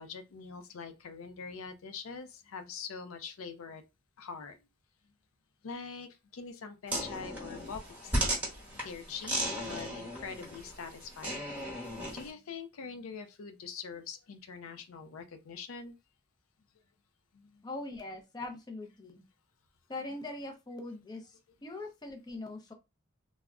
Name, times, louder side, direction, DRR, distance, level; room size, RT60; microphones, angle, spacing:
voice 1, 0.0-3.8 4.2-4.7 5.6-8.3 8.7-15.9 17.3-17.6, left 5 dB, 80° left, 0.4 m, -44 dB
sound 1, 6.9-12.3, right 1 dB, 5° right, 0.9 m, -36 dB
voice 2, 17.6-19.2 19.9-22.7, left 2 dB, 20° left, 0.5 m, -42 dB
3.4 x 2.0 x 2.3 m
head